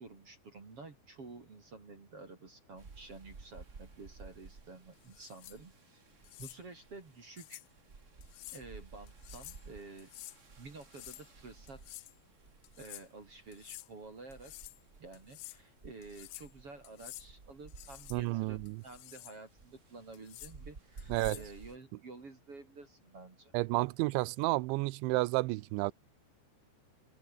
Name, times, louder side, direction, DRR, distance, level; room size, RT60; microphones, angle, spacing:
voice 1, 0.0-6.0 6.4-7.6 8.5-10.1 10.6-12.0 12.8-14.5 15.0-23.5, right 3 dB, 35° right, 4.0 m, -51 dB
sound 1, 2.8-21.8, right 4 dB, 55° right, 0.7 m, -54 dB
sound 2, 5.1-5.6 6.2-6.6 7.4-7.7 8.2-8.6 9.1-9.6 10.0-10.4 10.8-11.3 11.7-12.2 12.6-13.1 13.5-13.9 14.3-14.8 15.1-15.6 16.0-16.5 16.8-17.3 17.7-18.2 18.7-19.4 20.1-20.5 21.0-21.5, left 20 dB, 80° left, 2.3 m, -50 dB
voice 2, 18.1-18.8 21.1-21.4 23.5-25.9, right 22 dB, 85° right, 3.0 m, -31 dB
open air
omnidirectional pair, 5.3 m